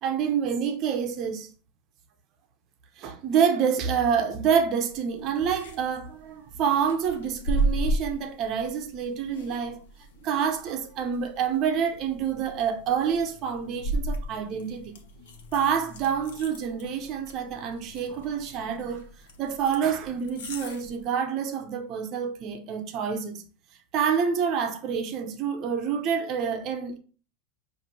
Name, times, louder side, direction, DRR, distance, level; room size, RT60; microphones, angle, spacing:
voice 1, 0.0-1.5 3.0-9.8 10.2-14.9 15.5-19.0 19.4-23.4 23.9-27.0, right 7 dB, 35° right, 0.6 m, -27 dB
sound 1, 4.9-21.0, right 1 dB, 85° left, 0.9 m, -35 dB
6.5 x 2.6 x 3.0 m
supercardioid pair, 155°, 0 cm